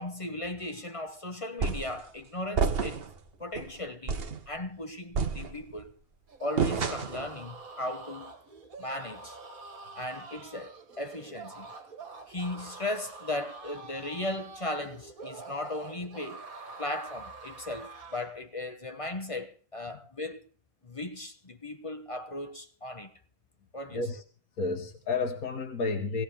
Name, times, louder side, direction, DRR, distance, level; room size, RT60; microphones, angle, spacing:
voice 1, 0.0-3.1 3.4-5.9 6.4-8.3 8.8-9.4 10.0-11.7 12.3-16.4 16.8-20.4 20.8-23.1 23.7-24.0, left 1 dB, 30° left, 0.8 m, -37 dB
sound 1, 1.6-2.0 2.6-3.2 3.6-3.7 4.1-4.4 5.1-5.8 6.6-7.3, right 5 dB, 45° right, 1.2 m, -29 dB
sound 2, 6.3-18.4, right 3 dB, 75° right, 1.9 m, -46 dB
voice 2, 23.9-24.2 24.6-26.2, left 3 dB, 85° left, 1.8 m, -31 dB
17.5 x 16.5 x 3.5 m
omnidirectional pair, 1.5 m